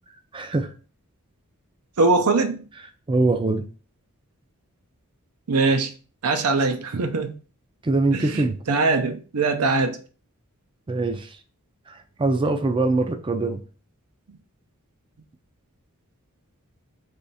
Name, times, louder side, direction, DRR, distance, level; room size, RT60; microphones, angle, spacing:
voice 1, 0.3-0.7 3.1-3.6 7.8-8.6 10.9-11.4 11.9-13.6, right 2 dB, 20° right, 0.4 m, -23 dB
voice 2, 2.0-2.6 5.5-5.9 6.2-7.4 8.1-8.4 8.7-10.0, right 3 dB, 80° right, 0.6 m, -21 dB
3.5 x 3.4 x 4.1 m
head